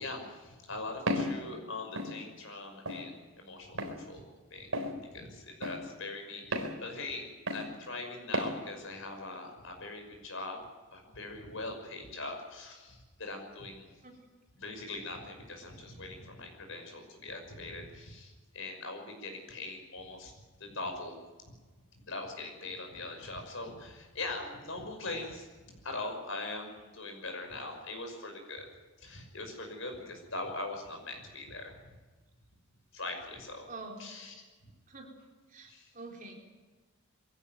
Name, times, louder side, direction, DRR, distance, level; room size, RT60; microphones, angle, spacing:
voice 1, 0.0-4.2 4.5-4.7 5.1-10.6 10.9-13.9 14.5-20.3 20.6-21.2 21.5-21.6 22.0-25.5 25.8-28.7 29.0-31.9 32.9-33.7 34.0-34.3 35.7-35.9, left 2 dB, 60° left, 4 dB, 5.7 m, -41 dB
Walk footsteps, 1.1-1.3 2.0-2.1 2.9-3.0 3.8-4.0 4.7-4.9 5.6-5.8 6.5-6.7 7.5-7.7 8.3-8.5, equal, 70° right, 4.0 m, -32 dB
voice 2, 33.7-34.0 34.9-35.1 35.5-36.3, right 3 dB, 35° right, 0 dB, 4.1 m, -46 dB
23.0 x 16.0 x 9.2 m, 1.4 s
head